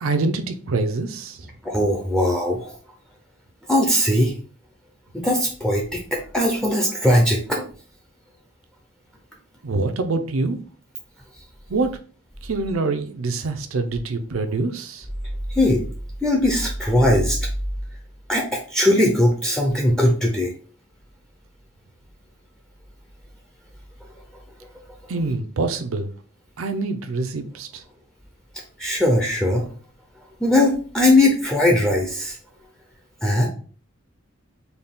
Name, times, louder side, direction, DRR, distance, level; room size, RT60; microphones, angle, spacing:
voice 1, 0.0-1.4 9.6-10.6 11.7-11.9 12.4-15.0 25.1-26.1 26.6-27.7, right 3 dB, 85° right, 8 dB, 0.5 m, -25 dB
voice 2, 1.6-2.7 3.7-4.3 5.1-7.6 15.5-15.8 16.2-17.4 18.3-20.5 28.8-29.6 30.4-32.4 33.2-33.5, left 1 dB, 5° left, 0 dB, 0.5 m, -19 dB
4.1 x 2.3 x 3.5 m, 0.42 s
head